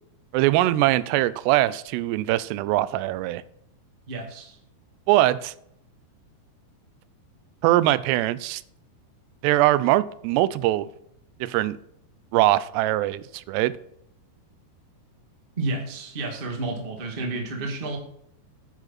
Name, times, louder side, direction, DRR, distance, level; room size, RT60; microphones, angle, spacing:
voice 1, 0.3-3.4 5.1-5.5 7.6-8.6 9.4-10.9 11.4-11.8 12.3-13.8, right 16 dB, 90° right, 17 dB, 2.7 m, -22 dB
voice 2, 4.1-4.6 15.6-18.0, right 2 dB, 30° right, 1 dB, 1.0 m, -31 dB
9.9 x 9.8 x 4.2 m, 0.72 s
omnidirectional pair, 4.8 m